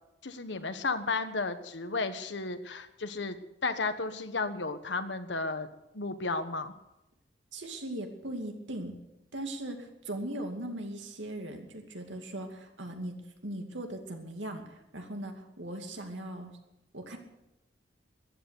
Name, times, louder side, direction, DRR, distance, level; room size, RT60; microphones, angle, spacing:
voice 1, 0.2-5.7 5.9-6.7, left 3 dB, 70° left, 9 dB, 1.3 m, -33 dB
voice 2, 7.5-8.9 9.3-13.1 13.4-16.5 16.9-17.2, right 1 dB, 85° right, 4 dB, 2.5 m, -39 dB
14.5 x 11.0 x 8.2 m, 0.91 s
head